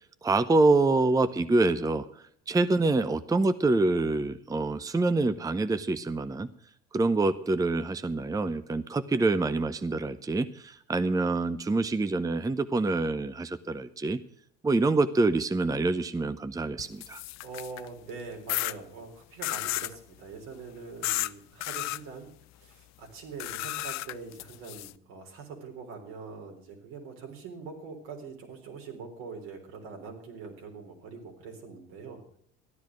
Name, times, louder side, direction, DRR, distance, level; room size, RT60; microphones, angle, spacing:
voice 1, 0.2-2.0 2.5-6.5 6.9-14.2 14.6-17.2, right 3 dB, 10° right, 13 dB, 0.7 m, -26 dB
sound 1, 16.8-17.9 18.5-18.7 19.4-19.9 21.0-21.3 21.6-22.0 23.4-24.9, left 18 dB, 55° left, 0.6 m, -32 dB
voice 2, 17.4-22.3 22.6-32.4, right 4 dB, 75° right, 2 dB, 4.1 m, -43 dB
14.0 x 10.5 x 6.2 m, 0.65 s
hypercardioid pair, 80°, 34 cm